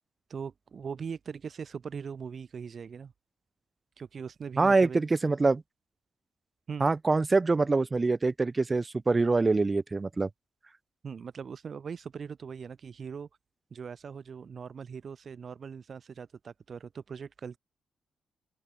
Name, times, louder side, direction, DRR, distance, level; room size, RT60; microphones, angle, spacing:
voice 1, 0.3-3.1 4.0-5.0 6.7-6.9 11.0-13.3 13.7-17.6, right 6 dB, 40° right, 1.5 m, -40 dB
voice 2, 4.6-5.6 6.8-10.3, right 3 dB, 20° right, 0.4 m, -25 dB
open air
wide cardioid pair, 160°, 0 cm